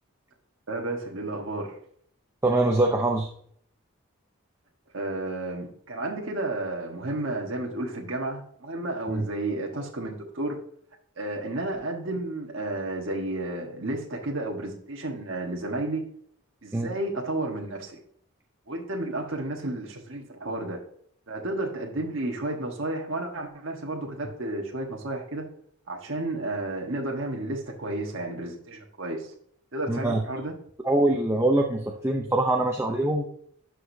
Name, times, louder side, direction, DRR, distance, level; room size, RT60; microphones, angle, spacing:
voice 1, 0.7-1.8 4.9-10.6 11.2-16.1 16.6-18.0 18.7-20.8 21.3-25.5 25.9-29.3 29.7-30.5, right 2 dB, 65° right, 0 dB, 1.3 m, -32 dB
voice 2, 2.4-3.3 9.1-9.2 16.7-16.9 29.9-30.2 30.8-33.2, right 2 dB, 15° right, 1 dB, 0.6 m, -23 dB
12.0 x 4.9 x 2.7 m, 0.62 s
head